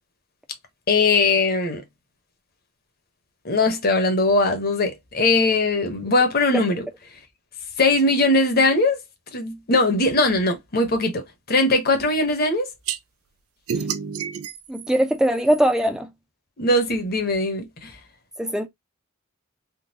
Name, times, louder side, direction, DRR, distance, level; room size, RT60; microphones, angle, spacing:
voice 1, 0.9-1.8 3.4-6.9 7.8-9.0 9.3-12.7 16.6-17.9, left 2 dB, 45° left, 1.0 m, -20 dB
sound 1, 12.9-13.0 13.7-15.9, right 7 dB, 85° right, 0.5 m, -30 dB
voice 2, 14.7-16.1 18.4-18.7, right 1 dB, 5° right, 0.6 m, -21 dB
3.7 x 2.3 x 2.8 m
head